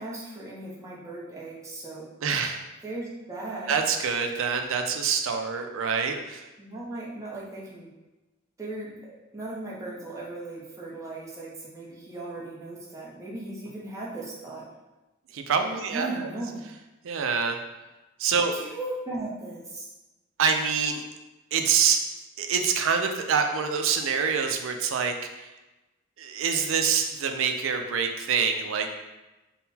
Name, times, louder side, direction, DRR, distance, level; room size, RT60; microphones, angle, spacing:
voice 1, 0.0-2.1 2.8-3.8 6.6-7.9 8.6-14.6 15.9-16.6 18.5-19.9, right 2 dB, 15° right, -5 dB, 0.8 m, -37 dB
voice 2, 2.2-2.6 3.7-6.4 15.3-16.3 17.0-17.6 18.2-18.5 20.4-21.0 21.5-22.0 22.4-25.5 26.2-28.9, right 6 dB, 70° right, 5 dB, 0.4 m, -26 dB
3.7 x 2.2 x 4.1 m, 1.1 s
head